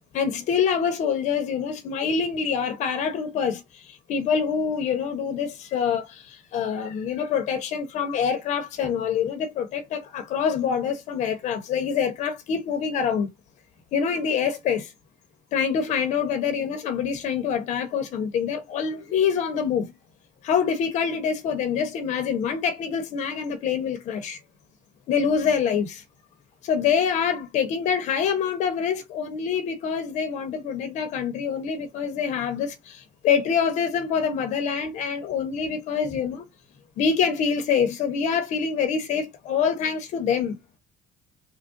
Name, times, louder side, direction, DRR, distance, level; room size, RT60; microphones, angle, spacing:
voice 1, 0.1-13.3 13.9-14.9 15.5-19.9 20.4-24.4 25.1-26.0 26.6-36.4 37.0-40.6, left 7 dB, 65° left, 1.0 m, -25 dB
3.3 x 2.6 x 3.7 m
supercardioid pair, 95°, 13 cm